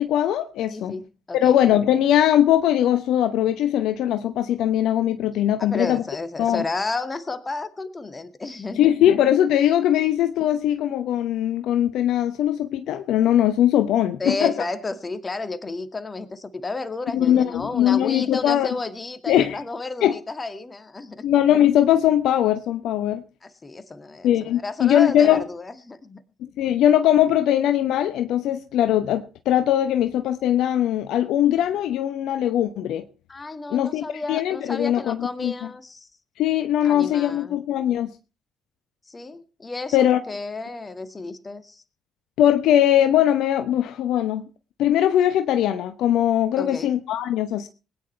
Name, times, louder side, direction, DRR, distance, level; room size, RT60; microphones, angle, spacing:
voice 1, 0.0-0.9 1.3-6.0 6.4-6.6 8.8-14.5 17.1-18.7 19.3-19.6 20.0-20.2 21.2-23.2 24.2-25.4 26.4-33.0 33.7-35.5 36.4-38.1 39.9-40.2 42.4-44.4 44.8-47.7, left 11 dB, 65° left, 10 dB, 0.9 m, -20 dB
voice 2, 0.7-1.6 5.6-8.9 14.2-21.3 23.4-26.2 33.3-36.1 36.9-37.6 39.1-41.8 46.6-46.9, left 3 dB, 30° left, 11 dB, 2.1 m, -32 dB
20.5 x 9.9 x 4.5 m, 0.34 s
hypercardioid pair, 50°, 0 cm